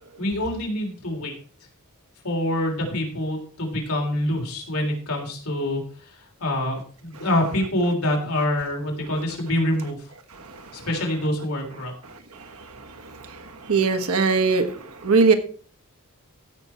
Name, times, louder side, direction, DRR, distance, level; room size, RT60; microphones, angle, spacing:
voice 1, 0.2-1.3 2.2-10.1 10.7-11.9, left 1 dB, 70° left, 1 dB, 3.4 m, -26 dB
voice 2, 10.3-10.9 12.1-15.3, right 4 dB, 75° right, 7 dB, 1.4 m, -23 dB
15.5 x 6.2 x 4.5 m, 0.43 s
head